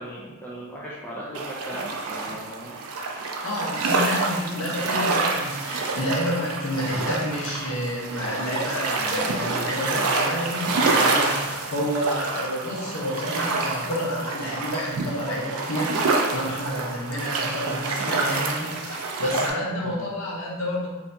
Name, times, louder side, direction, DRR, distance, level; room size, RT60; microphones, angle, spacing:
voice 1, 0.0-2.8 19.8-20.1, equal, 10° left, -6 dB, 0.4 m, -38 dB
sound 1, 1.3-19.5, right 3 dB, 90° right, 0.4 m, -27 dB
voice 2, 3.4-20.9, left 1 dB, 65° left, -4 dB, 0.9 m, -29 dB
2.7 x 2.6 x 3.3 m, 1.1 s
head